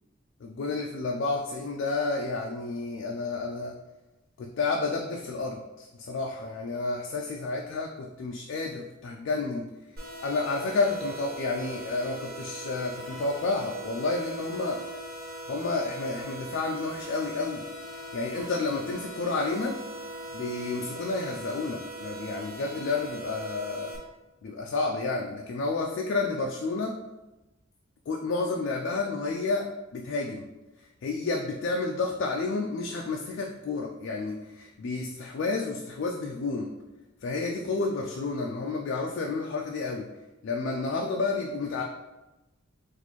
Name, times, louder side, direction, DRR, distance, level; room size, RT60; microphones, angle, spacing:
voice 1, 0.4-3.8 4.4-9.7 10.2-14.8 15.5-17.6 17.9-19.8 20.3-23.9 24.4-27.0 28.1-30.5 31.0-36.7 37.2-40.1 40.4-41.8, left 3 dB, 55° left, 0 dB, 0.3 m, -30 dB
sound 1, 10.0-24.0, right 1 dB, 45° right, 1.0 m, -40 dB
4.1 x 2.5 x 3.0 m, 1.1 s
head